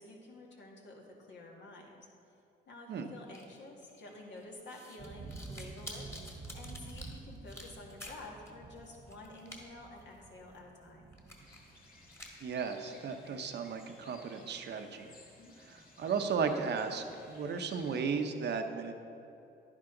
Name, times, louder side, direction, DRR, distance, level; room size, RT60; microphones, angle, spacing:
voice 1, 0.0-2.0 2.7-11.2 15.4-15.6, left 2 dB, 65° left, -1 dB, 2.0 m, -50 dB
sound 1, 3.3-8.5 8.8-9.6 10.0-10.1 10.6-10.7 11.1-11.8 12.1-12.5, left 1 dB, 15° left, 1.7 m, -50 dB
sound 2, 5.0-12.6, right 3 dB, 30° right, 0.8 m, -50 dB
sound 3, 11.4-18.0, left 2 dB, 45° left, 2.0 m, -58 dB
voice 2, 12.4-15.1 15.6-18.9, right 5 dB, 60° right, 6 dB, 0.9 m, -35 dB
11.0 x 9.9 x 3.9 m, 2.8 s
cardioid pair, 90°, 20 cm